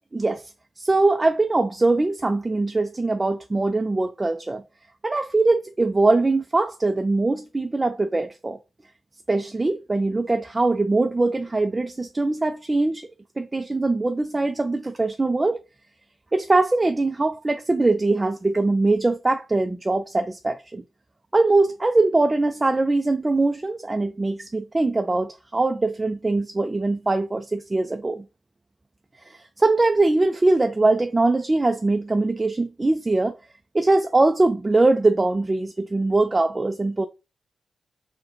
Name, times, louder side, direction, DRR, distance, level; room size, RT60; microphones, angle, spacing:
voice 1, 0.1-0.5 0.8-4.6 5.0-8.6 9.3-13.1 13.4-15.6 16.3-20.8 21.3-28.3 29.3-33.4 33.7-37.1, right 2 dB, 25° right, 0.3 m, -22 dB
3.8 x 2.1 x 4.3 m
cardioid pair, 85°, 0 cm